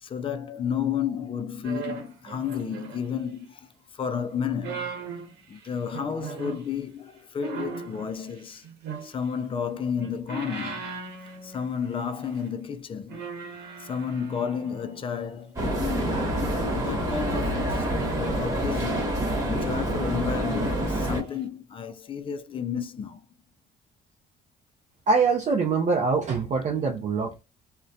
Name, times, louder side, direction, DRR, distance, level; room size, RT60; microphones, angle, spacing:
voice 1, 0.0-4.9 5.5-8.6 9.0-10.9 11.4-13.2 13.8-16.3 16.7-19.1 19.4-23.2, left 7 dB, 30° left, 0.4 m, -32 dB
sound 1, 1.6-3.4 4.4-6.7 7.4-9.5 9.9-12.0 12.2-12.5 13.1-15.1 16.0-17.3 18.1-20.1 20.4-20.9 21.3-21.4, right 5 dB, 85° right, 0.9 m, -39 dB
sound 2, 15.6-21.2, right 1 dB, 20° right, 1.2 m, -27 dB
voice 2, 25.1-27.4, right 4 dB, 45° right, 0.5 m, -24 dB
2.6 x 2.1 x 2.3 m
cardioid pair, 110°, 17 cm